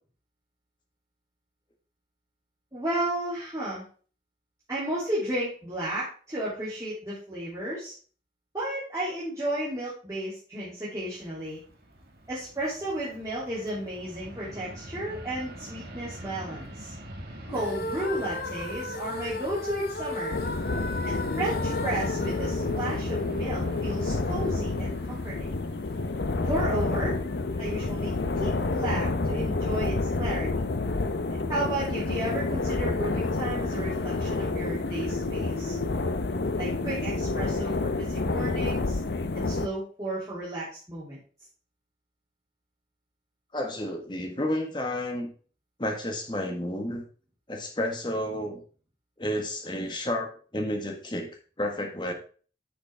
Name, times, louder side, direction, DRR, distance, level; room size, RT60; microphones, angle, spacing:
voice 1, 2.7-3.8 4.7-7.9 8.5-11.6 12.3-16.9 17.5-20.4 21.0-25.5 26.4-27.2 27.6-30.6 31.5-35.8 36.6-39.0 39.3-41.2, right 1 dB, 20° right, -9 dB, 2.9 m, -33 dB
Fixed-wing aircraft airplane, 11.1-28.9, right 1 dB, 60° right, 1.8 m, -45 dB
sound 1, 17.5-23.6, left 2 dB, 60° left, 1.0 m, -36 dB
sound 2, 20.3-39.7, left 3 dB, 80° left, 0.7 m, -29 dB
voice 2, 43.5-45.3 45.8-47.0 47.5-48.6 49.2-51.3 51.6-52.1, left 1 dB, 25° left, 3 dB, 1.6 m, -31 dB
10.0 x 6.6 x 3.5 m, 0.40 s
head